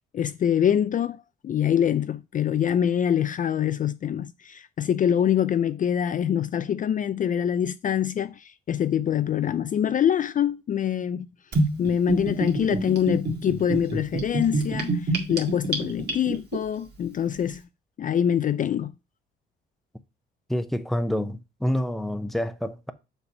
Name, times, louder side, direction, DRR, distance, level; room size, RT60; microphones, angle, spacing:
voice 1, 0.1-11.3 11.8-17.6 18.0-18.9, left 9 dB, 40° left, 0.4 m, -25 dB
Gurgling / Bathtub (filling or washing), 11.5-16.6, right 2 dB, 55° right, 1.9 m, -27 dB
voice 2, 20.5-22.9, equal, ahead, 0.7 m, -27 dB
7.0 x 3.3 x 5.2 m
cardioid pair, 90°, 20 cm